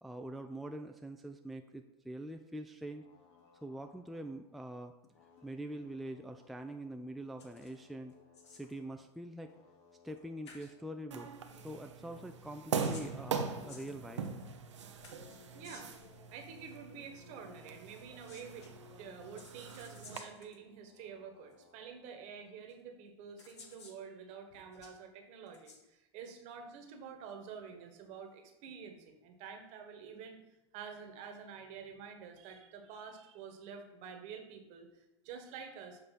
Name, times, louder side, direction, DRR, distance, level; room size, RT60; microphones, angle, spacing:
voice 1, 0.0-3.0 3.6-4.9 5.4-8.1 8.5-9.6 10.0-11.3 11.6-14.2, right 1 dB, ahead, 5 dB, 0.3 m, -44 dB
sound 1, 2.7-4.8 5.0-9.1 9.4-12.4 12.9-19.6 20.0-20.1 20.3-22.6, left 7 dB, 45° left, 1.0 m, -63 dB
sound 2, 7.4-7.8 8.1-8.8 10.1-10.2 10.4-10.7 12.5-14.4 15.0-16.0 18.0-18.7 19.4-20.6 21.5-21.6 22.7-22.8 23.4-24.0 24.5-25.0 25.5-25.8, left 4 dB, 75° left, 1.3 m, -56 dB
sound 3, 11.1-20.2, right 5 dB, 80° right, 0.7 m, -41 dB
voice 2, 15.5-15.9 16.3-30.4 30.7-36.0, right 6 dB, 50° right, 4 dB, 1.3 m, -49 dB
7.4 x 3.2 x 5.8 m, 0.92 s
hypercardioid pair, 90°, 15 cm